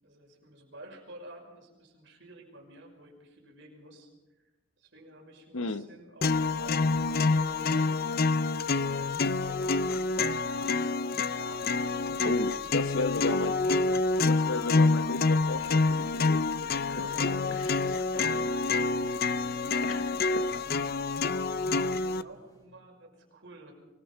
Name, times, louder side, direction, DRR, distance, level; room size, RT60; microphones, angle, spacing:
voice 1, 0.0-4.1 4.4-4.5 4.8-8.1 9.3-13.1 16.9-17.6 17.9-18.8 19.6-20.1 20.4-21.0 21.9-23.7, right 1 dB, 60° right, 1 dB, 5.8 m, -50 dB
voice 2, 5.5-5.9 12.2-13.8 14.2-17.1 17.7-18.0 19.8-20.1, left 3 dB, 75° left, 12 dB, 1.0 m, -35 dB
sound 1, 6.2-22.2, left 3 dB, 45° left, 0.6 m, -27 dB
sound 2, 17.5-22.6, equal, 20° left, 7.1 m, -64 dB
24.5 x 20.5 x 5.8 m, 1.1 s
head